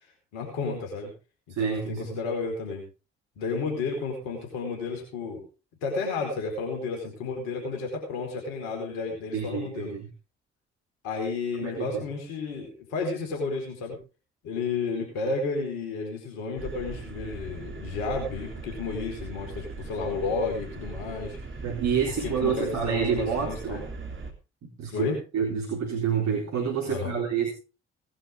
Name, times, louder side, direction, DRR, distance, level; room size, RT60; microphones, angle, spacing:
voice 1, 0.3-1.1 1.6-2.8 3.4-5.4 5.8-9.9 11.0-14.0 14.4-21.4 22.2-23.8 24.9-25.2 26.9-27.2, left 4 dB, 75° left, 2 dB, 4.6 m, -32 dB
voice 2, 1.5-2.2 9.3-10.1 11.6-12.0 21.6-23.8 24.8-27.5, right 7 dB, 60° right, 0 dB, 3.9 m, -28 dB
sound 1, 16.6-24.3, right 3 dB, 40° right, 3.6 m, -39 dB
18.5 x 11.0 x 3.6 m, 0.32 s
figure-of-eight pair, 40°, 32 cm